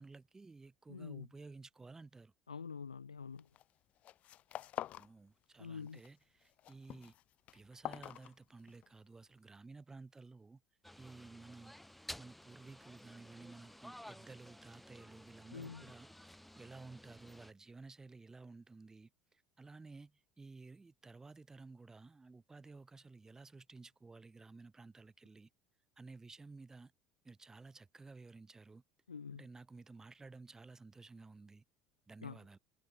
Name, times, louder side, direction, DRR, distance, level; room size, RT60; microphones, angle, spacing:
voice 1, 0.0-2.3 4.9-7.1 7.5-10.6 11.0-11.8 12.2-16.1 16.6-25.5 26.0-26.9 27.2-28.8 29.3-31.6 32.1-32.6, right 3 dB, 15° right, 5.4 m, -54 dB
voice 2, 0.9-1.3 2.5-3.5 5.6-6.0 15.5-15.8 29.1-29.5 32.2-32.4, left 6 dB, 85° left, 3.5 m, -46 dB
sound 1, 3.4-3.7 4.0-5.1 5.4-6.1 6.4-8.9, left 13 dB, 45° left, 1.1 m, -46 dB
sound 2, 10.8-17.5, left 1 dB, 5° left, 2.9 m, -54 dB
figure-of-eight pair, 70°, 3 cm